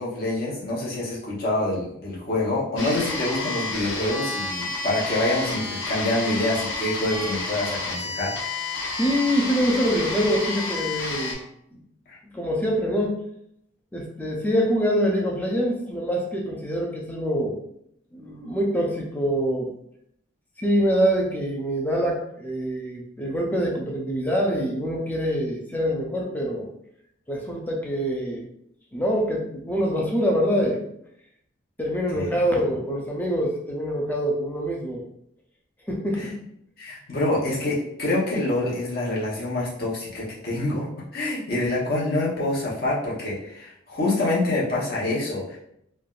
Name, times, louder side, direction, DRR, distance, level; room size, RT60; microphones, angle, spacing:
voice 1, 0.0-8.3 12.1-12.2 32.1-32.3 36.8-40.9 41.1-45.6, left 2 dB, 50° left, -6 dB, 0.9 m, -26 dB
sound 1, 2.8-11.3, left 3 dB, 75° left, 0.7 m, -30 dB
voice 2, 9.0-11.4 11.7-11.8 12.3-13.2 13.9-17.5 18.1-19.7 20.6-26.7 27.3-28.5 28.9-30.8 31.8-35.0 35.9-36.4, equal, 10° left, -1 dB, 0.4 m, -25 dB
3.3 x 2.2 x 2.4 m, 0.74 s
head